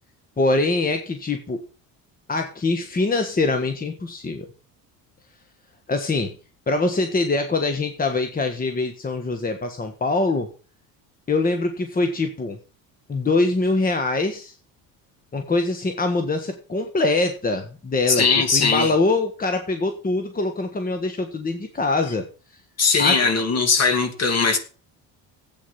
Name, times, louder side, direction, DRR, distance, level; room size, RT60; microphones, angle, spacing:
voice 1, 0.4-1.6 2.3-4.5 5.9-6.3 6.7-10.5 11.3-12.6 13.1-14.5 15.3-22.3 23.0-23.2, left 3 dB, 20° left, 1.4 m, -23 dB
voice 2, 18.1-18.9 22.8-24.6, left 4 dB, 40° left, 2.4 m, -19 dB
11.5 x 8.7 x 5.7 m
cardioid pair, 100°, 39 cm